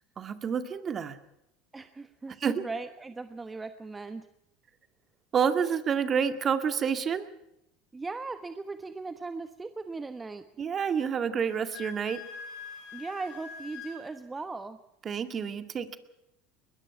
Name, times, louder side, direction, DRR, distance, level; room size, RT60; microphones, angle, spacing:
voice 1, 0.2-1.2 2.4-2.6 5.3-7.3 10.6-12.2 15.1-16.0, right 7 dB, 35° right, 9 dB, 2.0 m, -28 dB
voice 2, 1.7-4.3 7.9-10.4 12.9-14.8, right 3 dB, 20° right, 10 dB, 1.1 m, -38 dB
Wind instrument woodwind instrument, 11.4-14.0, left 6 dB, 65° left, 7.9 m, -44 dB
21.5 x 21.0 x 5.9 m, 0.84 s
hypercardioid pair, 85°, 0 cm